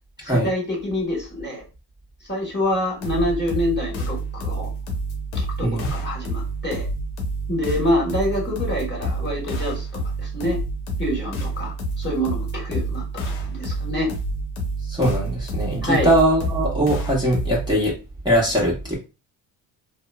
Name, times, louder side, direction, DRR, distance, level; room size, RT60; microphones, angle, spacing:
voice 1, 0.2-1.6 2.3-4.7 5.3-6.9 7.5-9.9 10.2-10.6 11.0-14.1 15.8-16.1, left 1 dB, 20° left, -1 dB, 1.3 m, -26 dB
sound 1, 3.0-17.8, right 2 dB, 85° left, 0.9 m, -28 dB
voice 2, 5.6-5.9 14.9-17.9 18.2-19.0, right 1 dB, 10° right, -5 dB, 1.1 m, -21 dB
2.9 x 2.1 x 2.2 m, 0.29 s
supercardioid pair, 80°, 47 cm